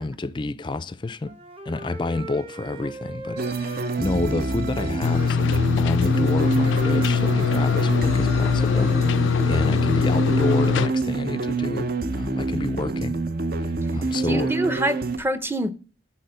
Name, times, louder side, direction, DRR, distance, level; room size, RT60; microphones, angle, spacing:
voice 1, 0.0-1.3 1.7-13.2 13.6-14.5, left 2 dB, 25° left, 0.4 m, -29 dB
Wind instrument woodwind instrument, 1.2-5.4 6.4-10.3, right 1 dB, 30° right, 1.1 m, -40 dB
sound 1, 3.4-15.2, right 3 dB, 50° right, 0.7 m, -26 dB
sound 2, 5.0-10.9, left 6 dB, 90° left, 0.4 m, -22 dB
voice 2, 14.2-15.7, right 1 dB, 10° right, 0.7 m, -25 dB
11.0 x 4.4 x 7.7 m
head